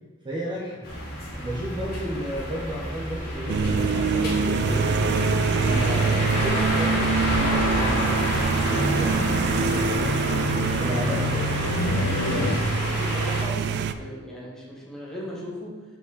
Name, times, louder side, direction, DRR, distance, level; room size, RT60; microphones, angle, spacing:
voice 1, 0.2-0.8 1.4-5.2 5.5-10.2 10.8-11.5, right 1 dB, 25° right, -5 dB, 0.9 m, -32 dB
sound 1, 0.8-13.4, left 1 dB, 50° left, 1.9 m, -30 dB
sound 2, 3.4-12.6, left 2 dB, 70° left, 0.6 m, -32 dB
sound 3, 3.5-13.9, right 5 dB, 55° right, 0.3 m, -25 dB
voice 2, 12.3-15.8, equal, 5° left, -5 dB, 1.6 m, -37 dB
5.5 x 5.2 x 3.9 m, 1.4 s
head